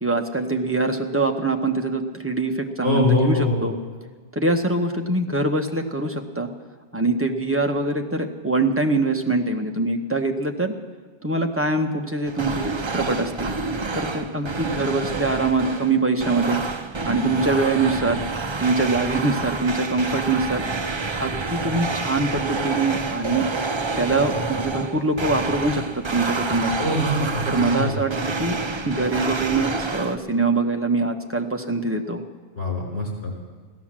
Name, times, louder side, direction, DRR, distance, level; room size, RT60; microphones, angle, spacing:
voice 1, 0.0-3.7 4.3-6.5 6.9-10.7 11.2-13.5 13.9-16.6 17.0-18.2 18.6-20.7 21.2-23.5 24.0-26.9 27.5-28.1 28.4-28.6 28.8-32.2, right 3 dB, 10° right, 3 dB, 0.9 m, -23 dB
voice 2, 2.8-3.6 26.8-28.0 32.5-33.3, left 2 dB, 70° left, -2 dB, 4.5 m, -23 dB
sound 1, 12.3-30.2, right 3 dB, 30° right, 0.6 m, -28 dB
16.0 x 11.5 x 7.4 m, 1.5 s
omnidirectional pair, 1.2 m